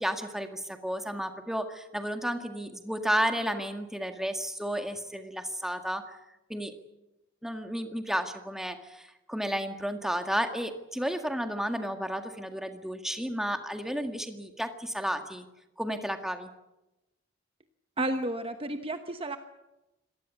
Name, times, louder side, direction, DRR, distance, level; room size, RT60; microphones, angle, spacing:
voice 1, 0.0-6.2 6.5-6.7 7.4-15.5 15.8-16.5, equal, ahead, 6 dB, 1.9 m, -32 dB
voice 2, 18.0-19.4, right 1 dB, 30° right, 8 dB, 1.1 m, -31 dB
25.5 x 18.5 x 8.3 m, 0.96 s
head